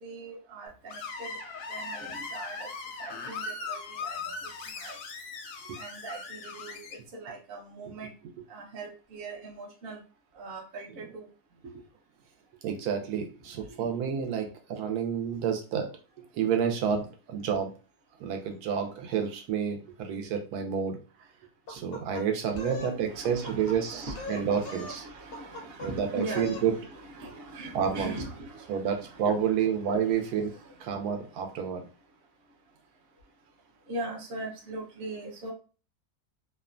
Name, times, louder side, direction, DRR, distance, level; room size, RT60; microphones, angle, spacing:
voice 1, 0.0-1.4 1.7-2.7 3.0-5.0 5.7-8.1 8.5-10.0 10.3-11.3 11.6-11.8 13.6-13.8 22.5-29.5 29.8-31.2 33.8-35.5, right 2 dB, 50° right, 0 dB, 0.8 m, -41 dB
Screech, 0.9-7.0, left 4 dB, 85° left, 1.1 m, -39 dB
voice 2, 12.6-15.9 16.3-17.7 18.2-21.0 21.7-25.0 25.8-26.7 27.7-28.1 28.7-30.5 30.8-31.9, right 7 dB, 85° right, 4 dB, 1.1 m, -29 dB
sound 1, 21.7-22.9 23.2-23.8 24.1-25.0 25.3-25.9 26.2-26.7, left 2 dB, 60° left, 0.6 m, -39 dB
2.9 x 2.1 x 2.4 m, 0.35 s
omnidirectional pair, 1.6 m